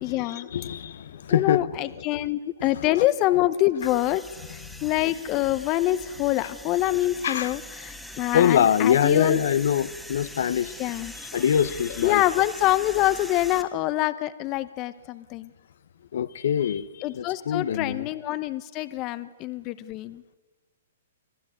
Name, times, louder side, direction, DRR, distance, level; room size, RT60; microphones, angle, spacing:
voice 1, 0.0-0.5 1.3-4.2 4.5-9.4 10.8-11.1 12.0-15.5 17.0-20.2, left 15 dB, 35° left, 0.8 m, -25 dB
voice 2, 0.5-1.6 7.2-7.5 8.3-10.7 11.3-12.2 16.1-16.9 17.2-18.1, left 9 dB, 70° left, 0.9 m, -23 dB
sound 1, 3.8-13.6, left 1 dB, ahead, 1.7 m, -42 dB
24.5 x 16.0 x 9.3 m
hypercardioid pair, 130°, 0 cm